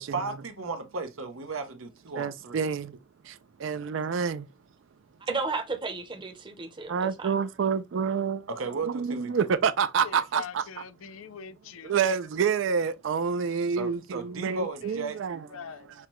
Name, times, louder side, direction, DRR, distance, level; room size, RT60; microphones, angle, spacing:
voice 1, 0.0-2.7 8.5-9.5 13.8-15.2, right 4 dB, 90° right, 0.8 m, -35 dB
voice 2, 2.2-3.0 3.2-4.5 6.9-8.5 8.9-10.6 11.8-15.4, right 6 dB, 65° right, 0.4 m, -28 dB
voice 3, 5.3-7.3, right 3 dB, 25° right, 0.7 m, -33 dB
voice 4, 10.0-12.0 14.3-15.0 15.2-15.9, left 7 dB, 80° left, 0.5 m, -44 dB
5.8 x 2.2 x 3.0 m
head